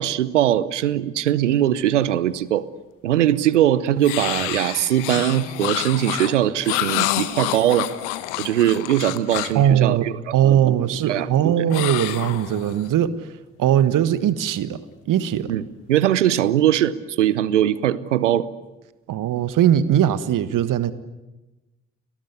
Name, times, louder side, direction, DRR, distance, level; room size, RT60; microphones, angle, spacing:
voice 1, 0.0-2.6 3.0-7.9 8.4-10.1 10.4-10.6 11.1-11.5 15.5-15.6 15.9-18.5, right 12 dB, 90° right, 0.8 m, -20 dB
sound 1, 4.0-9.7 11.7-12.9, left 16 dB, 80° left, 1.3 m, -28 dB
voice 2, 9.5-10.0 10.3-13.1 13.6-14.8 15.1-15.5 19.1-20.9, right 10 dB, 60° right, 1.6 m, -19 dB
30.0 x 19.5 x 9.6 m
hypercardioid pair, 40°, 35 cm